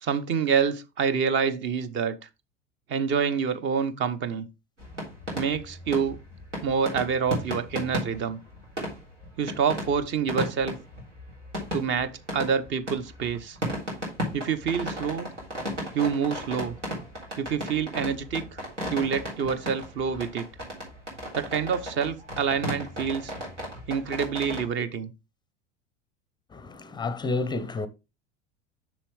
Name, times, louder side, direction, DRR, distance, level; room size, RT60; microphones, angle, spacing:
voice 1, 0.0-2.2 2.9-4.5 5.3-6.2 6.6-8.4 9.4-10.8 11.7-13.6 14.3-15.3 15.9-16.7 17.3-18.6 18.9-20.5 21.3-23.3 23.9-25.1, right 6 dB, 35° right, 0.8 m, -27 dB
sound 1, 4.8-24.7, equal, 85° right, 3.6 m, -36 dB
voice 2, 26.5-27.9, left 3 dB, 15° left, 0.6 m, -30 dB
7.1 x 6.2 x 3.3 m
figure-of-eight pair, 75°, 35 cm